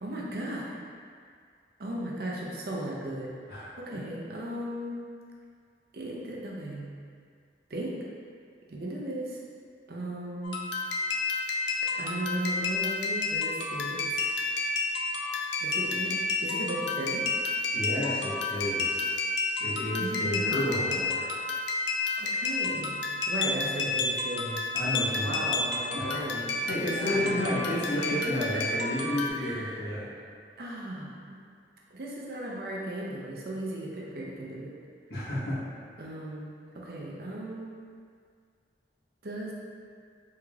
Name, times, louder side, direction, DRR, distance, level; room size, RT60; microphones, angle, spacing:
voice 1, 0.0-0.8 1.8-3.3 3.8-5.0 5.9-6.9 7.7-8.0 8.7-9.4 9.9-10.6 12.0-14.3 15.6-17.2 20.0-20.9 22.2-23.0 23.3-24.7 25.1-27.4 27.9-28.8 29.4-30.1 30.6-31.4 31.9-34.7 36.0-37.7 39.2-39.5, right 1 dB, 60° right, -3 dB, 0.5 m, -36 dB
sound 1, 10.4-29.3, left 3 dB, 85° left, 0.4 m, -30 dB
voice 2, 17.7-19.1 19.6-21.4 24.7-25.3 25.9-26.1 26.6-30.1 35.1-35.6, left 1 dB, 65° left, -9 dB, 1.0 m, -31 dB
3.6 x 3.2 x 2.3 m, 2.1 s
head